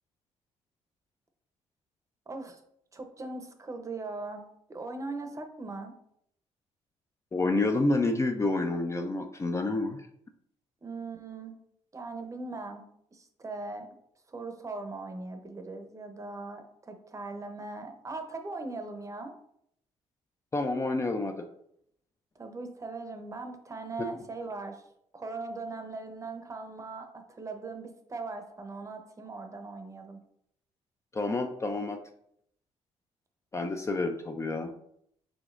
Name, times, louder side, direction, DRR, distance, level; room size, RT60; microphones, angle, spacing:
voice 1, 2.3-2.6 2.9-4.4 4.7-5.9 10.8-11.6 11.9-12.8 13.1-13.9 14.3-19.3 22.4-24.8 25.1-30.2, right 3 dB, 25° right, 6 dB, 0.7 m, -39 dB
voice 2, 7.3-10.1 20.5-21.5 31.1-32.0 33.5-34.7, left 2 dB, 25° left, 5 dB, 0.4 m, -29 dB
5.0 x 3.6 x 2.5 m, 0.71 s
cardioid pair, 85°, 12 cm